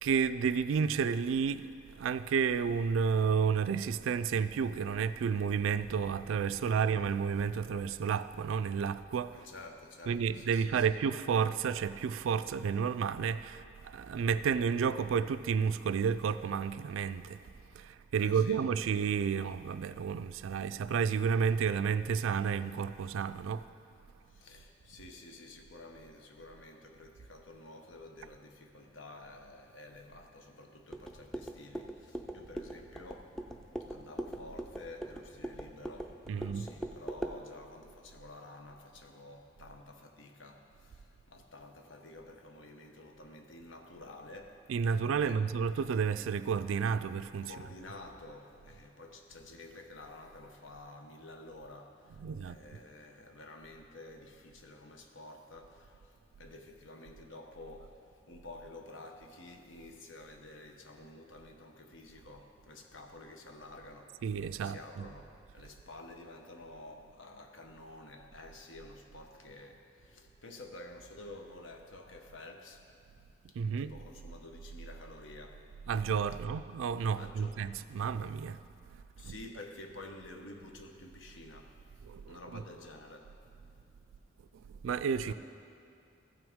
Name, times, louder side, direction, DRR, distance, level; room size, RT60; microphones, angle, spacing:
voice 1, 0.0-9.4 10.1-17.4 17.7-23.7 36.3-36.7 44.7-47.5 52.2-52.6 64.2-65.0 73.6-73.9 75.9-78.6 79.2-79.3 82.1-82.6 84.8-85.3, right 6 dB, 90° right, 0.3 m, -31 dB
voice 2, 9.3-11.0 18.2-18.6 24.3-33.4 33.9-44.6 45.2-45.5 47.4-64.2 64.6-72.9 73.6-75.7 77.2-77.6 79.2-81.8 82.3-83.3 85.3-85.4, left 2 dB, 80° left, 0.9 m, -50 dB
sound 1, 30.9-37.4, right 1 dB, ahead, 0.3 m, -42 dB
15.0 x 6.0 x 3.6 m
head